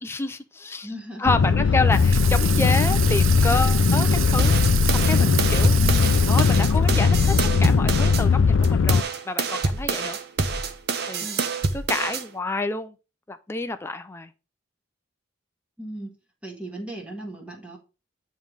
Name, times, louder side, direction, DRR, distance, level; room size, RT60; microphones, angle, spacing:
voice 1, 0.0-0.9 1.2-4.6 4.9-5.7 6.2-7.3 7.6-10.2 11.1-11.3 11.7-12.9 13.3-14.3, left 3 dB, 10° left, 8 dB, 0.4 m, -28 dB
voice 2, 0.8-1.4 5.7-6.2 11.2-11.5 15.8-16.1 16.4-17.8, equal, 5° right, 0 dB, 1.5 m, -37 dB
sound 1, 1.3-9.0, left 5 dB, 75° left, 0.4 m, -19 dB
Water tap faucet / Sink (filling or washing), 1.9-7.1, right 13 dB, 80° right, 0.5 m, -31 dB
sound 2, 4.4-8.2 8.6-12.2, right 4 dB, 50° right, 0.8 m, -27 dB
9.3 x 3.2 x 5.1 m, 0.31 s
head